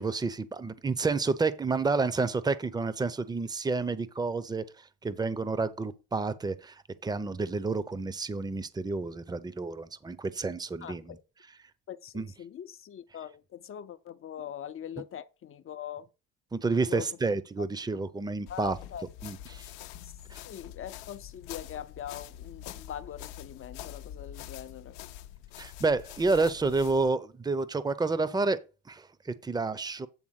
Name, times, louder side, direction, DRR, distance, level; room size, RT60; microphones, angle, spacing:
voice 1, 0.0-4.6 5.0-6.7 7.0-11.2 12.1-12.3 16.5-18.8 19.2-19.7 20.3-20.4 25.6-28.6 28.9-30.1, right 3 dB, 15° right, 0.7 m, -29 dB
voice 2, 10.8-11.2 11.9-16.1 16.8-17.1 18.5-19.1 20.0-20.1 20.4-25.0, left 10 dB, 45° left, 0.6 m, -42 dB
sound 1, 18.5-27.1, left 12 dB, 85° left, 0.7 m, -45 dB
8.8 x 3.4 x 6.4 m
supercardioid pair, 75°, 31 cm